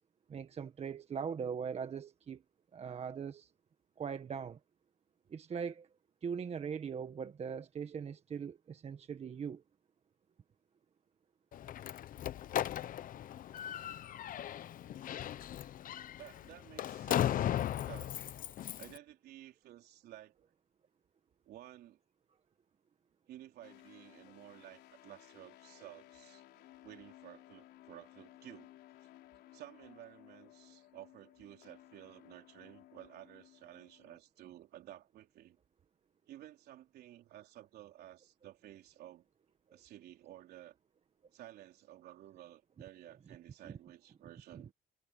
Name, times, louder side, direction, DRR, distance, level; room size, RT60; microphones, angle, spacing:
voice 1, 0.3-2.4 2.7-3.5 4.0-4.6 5.3-5.9 6.2-9.6 43.6-43.8 44.5-44.6, right 6 dB, 40° right, 1.6 m, -40 dB
Slam, 11.5-19.0, left 11 dB, 55° left, 0.8 m, -37 dB
voice 2, 16.2-18.3 18.8-20.4 21.5-22.0 23.3-26.4 26.8-28.7 29.5-35.6 36.3-39.3 39.7-40.8 41.3-44.7, right 13 dB, 70° right, 3.6 m, -54 dB
sound 1, 23.6-34.2, left 15 dB, 80° left, 4.0 m, -59 dB
cardioid pair, 110°, 17 cm